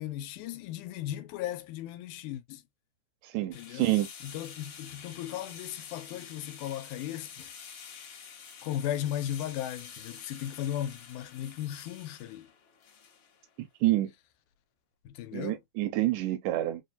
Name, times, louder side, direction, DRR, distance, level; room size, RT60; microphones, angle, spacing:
voice 1, 0.0-2.6 3.4-3.9 4.2-7.5 8.6-12.5 15.1-15.6, left 11 dB, 85° left, 2.1 m, -36 dB
voice 2, 3.2-4.1 13.8-14.1 15.3-16.8, right 16 dB, 85° right, 2.1 m, -28 dB
sound 1, 3.5-13.5, left 7 dB, 60° left, 1.5 m, -48 dB
5.1 x 2.2 x 2.7 m
omnidirectional pair, 3.6 m